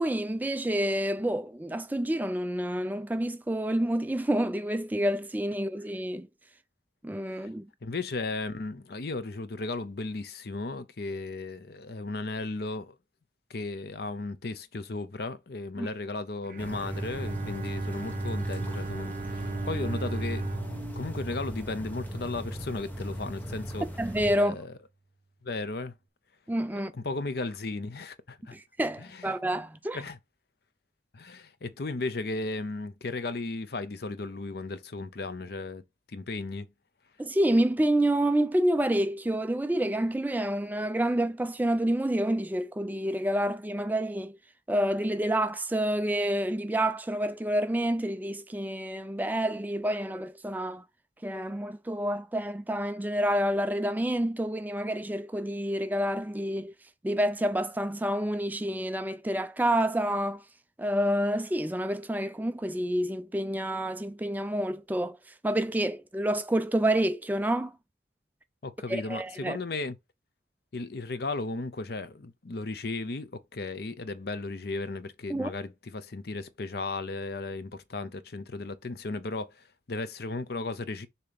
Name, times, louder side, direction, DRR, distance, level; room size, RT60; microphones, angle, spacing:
voice 1, 0.0-6.3 7.0-7.7 15.8-15.9 24.0-24.6 26.5-26.9 28.5-30.0 37.2-44.3 44.7-50.8 51.2-56.7 57.0-60.4 60.8-65.2 65.4-67.7 68.9-69.6 75.3-75.5, right 1 dB, 10° right, 0.3 m, -28 dB
voice 2, 7.8-13.0 13.5-20.5 21.0-23.9 24.3-24.7 25.4-25.9 26.9-28.6 29.0-29.3 29.9-30.2 31.1-35.8 36.1-36.7 68.6-70.0 70.7-81.1, left 3 dB, 55° left, 0.6 m, -35 dB
Bowed string instrument, 16.4-22.4, right 3 dB, 45° right, 0.7 m, -37 dB
sound 1, 16.6-24.4, equal, 10° left, 1.0 m, -37 dB
6.8 x 2.9 x 5.1 m
head